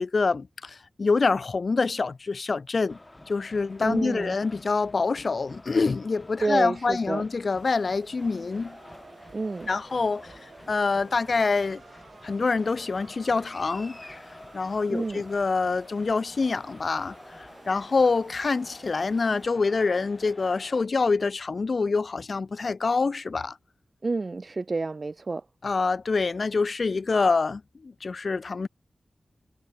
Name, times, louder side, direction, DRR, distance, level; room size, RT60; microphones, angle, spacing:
voice 1, 0.0-3.0 3.3-8.8 9.7-11.8 12.2-14.1 14.5-23.6 25.6-28.7, left 4 dB, 55° left, 0.7 m, -26 dB
sound 1, 2.9-20.8, left 1 dB, 20° left, 1.2 m, -49 dB
voice 2, 3.8-4.4 6.4-7.2 9.3-9.7 14.9-15.2 24.0-25.5, right 3 dB, 45° right, 0.5 m, -29 dB
sound 2, 7.6-19.5, right 5 dB, 85° right, 2.9 m, -53 dB
wide cardioid pair, 100°, 0 cm